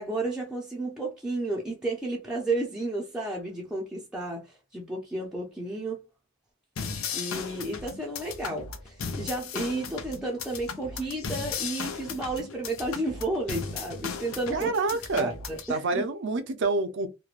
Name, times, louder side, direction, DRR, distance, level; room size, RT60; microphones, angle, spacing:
voice 1, 0.0-4.5 4.7-6.0 6.8-14.7 15.1-16.1, right 2 dB, 5° right, 0.5 m, -32 dB
sound 1, 6.8-15.7, left 5 dB, 85° left, 0.6 m, -36 dB
voice 2, 14.5-15.3 15.7-17.1, right 3 dB, 60° right, 0.5 m, -27 dB
3.1 x 2.1 x 2.4 m
head